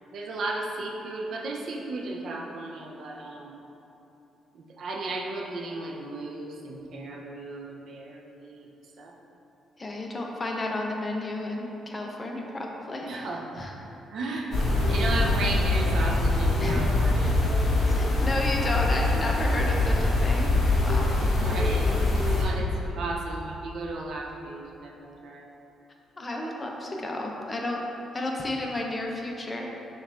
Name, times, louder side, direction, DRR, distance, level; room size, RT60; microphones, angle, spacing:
voice 1, 0.1-3.6 4.5-8.7 9.0-9.1 13.0-13.7 14.1-17.4 21.2-25.5, right 2 dB, 65° right, 0 dB, 0.5 m, -35 dB
voice 2, 9.8-13.3 13.5-13.7 16.6-16.8 17.2-17.4 17.9-20.6 20.8-21.1 26.2-27.9 28.1-29.7, left 1 dB, 30° left, 0 dB, 0.6 m, -32 dB
sound 1, 14.5-22.4, left 2 dB, 60° left, 0.9 m, -24 dB
6.2 x 2.5 x 3.3 m, 3.0 s
cardioid pair, 90°, 0 cm